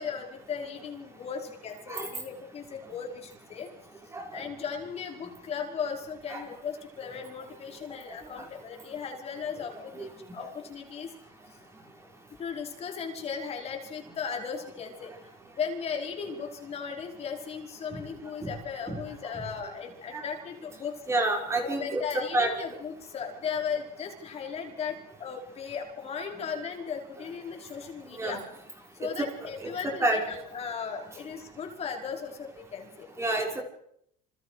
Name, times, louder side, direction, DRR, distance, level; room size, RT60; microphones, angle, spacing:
voice 1, 0.0-3.7 4.3-11.1 12.4-15.1 15.6-21.0 21.6-28.4 28.9-33.1, left 6 dB, 30° left, 3 dB, 5.2 m, -37 dB
voice 2, 21.1-22.0 22.3-22.5 28.2-28.4 29.2-29.3 29.6-30.2 33.2-33.6, right 2 dB, 15° right, 2 dB, 5.5 m, -29 dB
29.5 x 28.0 x 5.1 m, 0.71 s
cardioid pair, 160°, 21 cm